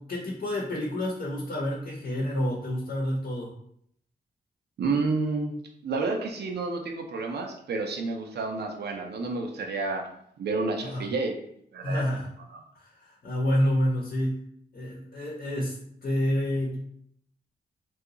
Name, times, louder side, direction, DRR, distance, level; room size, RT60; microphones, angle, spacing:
voice 1, 0.0-3.5 10.8-11.0 11.8-12.3 12.7-14.4 14.7-16.8, left 1 dB, 60° left, -2 dB, 0.8 m, -28 dB
voice 2, 4.8-5.6 5.8-10.1 10.4-11.4 11.7-12.1 12.5-12.6, right 3 dB, 80° right, 3 dB, 0.5 m, -30 dB
2.8 x 2.4 x 3.7 m, 0.68 s
cardioid pair, 80°, 17 cm